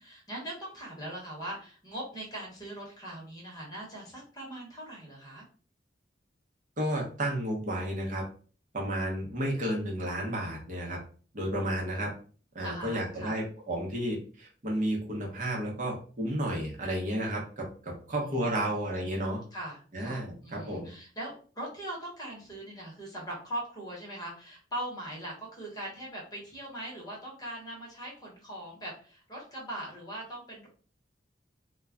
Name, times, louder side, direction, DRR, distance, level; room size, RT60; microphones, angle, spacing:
voice 1, 0.0-5.5 12.6-13.4 18.1-19.0 19.5-30.7, right 1 dB, 20° left, -3 dB, 0.9 m, -41 dB
voice 2, 6.8-8.2 8.7-11.0 11.3-12.1 12.5-19.4 19.9-20.9, right 1 dB, 45° right, -1 dB, 0.7 m, -32 dB
2.2 x 2.1 x 3.6 m, 0.40 s
head